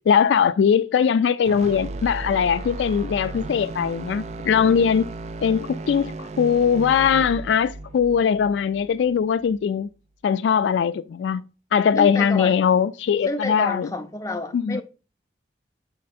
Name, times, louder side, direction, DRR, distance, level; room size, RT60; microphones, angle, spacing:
voice 1, 0.1-5.1 5.4-9.9 10.2-11.4 11.7-13.9 14.5-14.8, left 7 dB, 85° left, 0.3 m, -20 dB
sound 1, 1.4-9.6, right 3 dB, 40° right, 0.4 m, -35 dB
voice 2, 11.9-12.6 13.3-14.8, left 2 dB, 20° left, 0.6 m, -29 dB
6.5 x 4.2 x 4.1 m
head